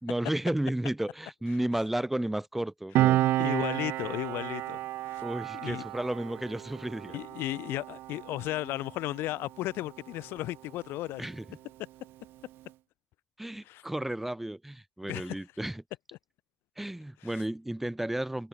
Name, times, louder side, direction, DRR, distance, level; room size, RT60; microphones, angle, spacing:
voice 1, 0.0-3.2 5.2-7.2 11.2-11.4 13.4-15.8 16.8-18.5, right 1 dB, 5° right, 3.4 m, -33 dB
Piano, 2.9-10.0 10.3-10.5, right 15 dB, 60° right, 2.0 m, -31 dB
voice 2, 3.4-4.8 5.0-5.2 5.5-5.8 7.1-11.3 13.6-13.8 15.1-15.4 17.2-17.4, left 17 dB, 65° left, 3.8 m, -35 dB
cardioid pair, 135°, 4 cm